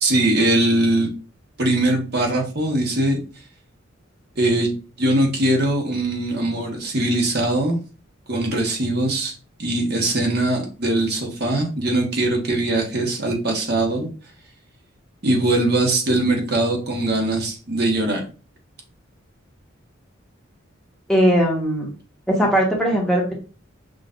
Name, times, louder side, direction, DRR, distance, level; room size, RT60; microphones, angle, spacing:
voice 1, 0.0-1.1 1.6-3.2 4.4-4.7 5.0-7.8 8.3-9.3 9.6-14.1 15.2-18.2, right 1 dB, 55° right, 1 dB, 1.1 m, -21 dB
voice 2, 21.1-21.9 22.3-23.3, equal, 5° left, -3 dB, 1.2 m, -19 dB
6.3 x 2.5 x 2.5 m, 0.35 s
head